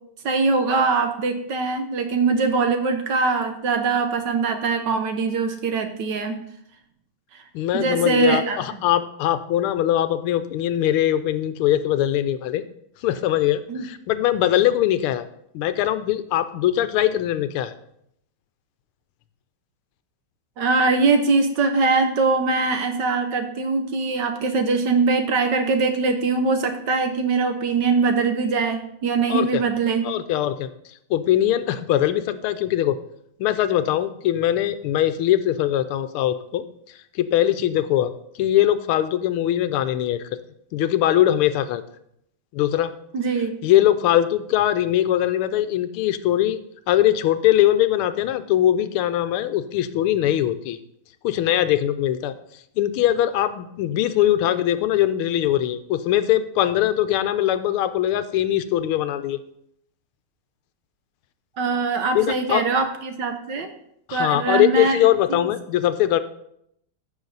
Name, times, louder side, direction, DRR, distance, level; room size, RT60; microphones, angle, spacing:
voice 1, 0.2-6.4 7.3-7.4 7.7-8.6 13.7-13.8 20.6-30.1 43.1-43.5 61.6-63.7 64.1-65.0 65.3-65.4, right 4 dB, 60° right, 7 dB, 1.3 m, -22 dB
voice 2, 7.5-12.6 13.0-15.2 15.5-17.7 29.3-29.6 30.0-30.7 31.1-33.0 33.4-36.6 37.1-38.1 38.4-40.2 40.7-41.8 42.5-42.9 43.6-46.6 46.9-50.8 51.2-52.3 52.8-59.4 62.1-62.6 64.1-66.2, left 12 dB, 80° left, 12 dB, 1.5 m, -21 dB
14.5 x 6.0 x 4.0 m, 0.74 s
omnidirectional pair, 2.4 m